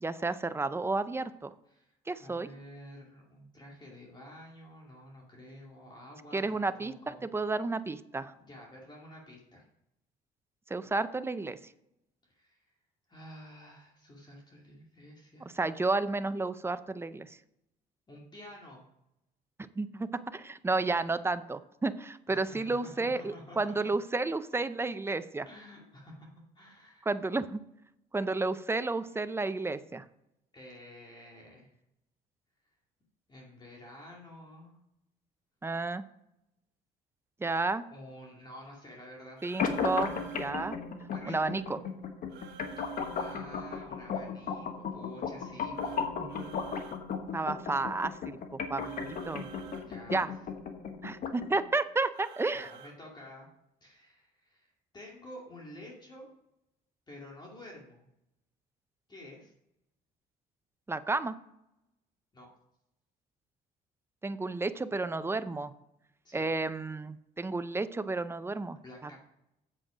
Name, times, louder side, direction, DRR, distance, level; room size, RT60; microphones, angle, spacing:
voice 1, 0.0-1.5 2.1-2.5 6.3-8.3 10.7-11.6 15.5-17.4 19.8-25.5 27.0-27.6 28.1-30.0 35.6-36.0 37.4-37.8 39.4-40.1 40.4-40.8 41.3-41.8 46.2-46.8 47.3-48.4 48.7-49.5 50.1-50.3 51.0-52.7 60.9-61.3 64.2-65.7 66.3-69.2, right 3 dB, 15° right, 12 dB, 0.5 m, -32 dB
voice 2, 1.7-7.2 8.4-9.6 12.3-12.7 13.1-15.5 18.1-18.8 22.3-23.9 25.5-26.3 26.5-27.1 30.5-31.7 33.3-34.8 37.9-39.4 41.1-41.5 42.8-46.0 49.8-50.3 52.5-53.5 53.8-56.3 57.1-58.0 59.1-59.5 62.3-62.5 66.2-66.5 68.8-69.2, left 1 dB, 25° left, -2 dB, 2.4 m, -50 dB
sound 1, 39.4-40.5 42.3-43.4 45.7-47.0 48.8-49.9 52.1-53.0, right 7 dB, 80° right, 1.4 m, -51 dB
sound 2, 39.6-51.6, left 5 dB, 55° left, 1.3 m, -36 dB
7.7 x 7.6 x 5.0 m, 0.84 s
cardioid pair, 110°, 17 cm